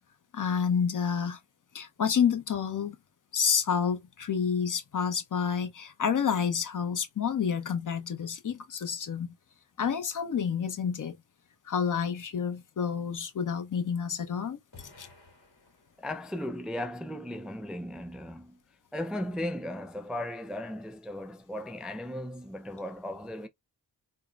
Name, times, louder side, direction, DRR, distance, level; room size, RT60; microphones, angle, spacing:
voice 1, 0.3-1.4 1.7-3.0 3.3-9.3 9.8-11.1 11.7-14.6 15.0-15.1, left 7 dB, 50° left, 0.7 m, -29 dB
sound 1, 14.7-16.3, left 3 dB, 65° left, 2.2 m, -54 dB
voice 2, 16.0-18.6 18.9-23.5, left 1 dB, ahead, 0.3 m, -36 dB
3.7 x 2.0 x 2.3 m
cardioid pair, 55°, 41 cm